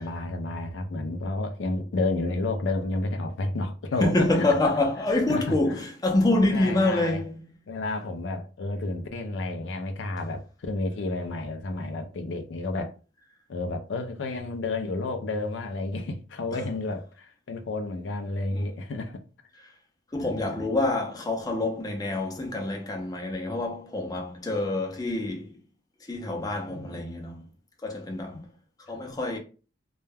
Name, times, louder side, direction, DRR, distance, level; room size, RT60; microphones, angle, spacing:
voice 1, 0.0-4.5 5.3-5.8 6.5-7.2 7.7-12.9 13.5-19.2 20.1-20.7 26.7-27.1 27.4-27.5 28.3-28.4, left 2 dB, 85° left, 0.4 m, -31 dB
voice 2, 4.0-7.4 18.5-18.7 20.1-25.6 26.1-27.4 27.8-28.5 28.9-29.4, left 2 dB, 20° left, 0.5 m, -26 dB
2.2 x 2.1 x 3.3 m
head